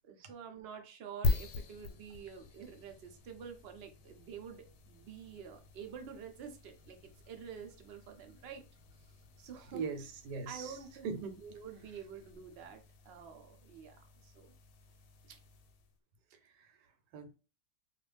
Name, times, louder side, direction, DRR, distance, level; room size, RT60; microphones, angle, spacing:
voice 1, 0.0-8.6 9.4-9.8 10.5-14.5 15.3-15.4, right 7 dB, 65° right, 0.6 m, -48 dB
sound 1, 1.2-16.0, left 3 dB, 85° left, 1.2 m, -43 dB
voice 2, 9.7-10.8 11.0-11.3 16.6-16.7 17.1-17.4, right 5 dB, 85° right, 1.2 m, -39 dB
2.4 x 2.4 x 3.2 m
omnidirectional pair, 1.8 m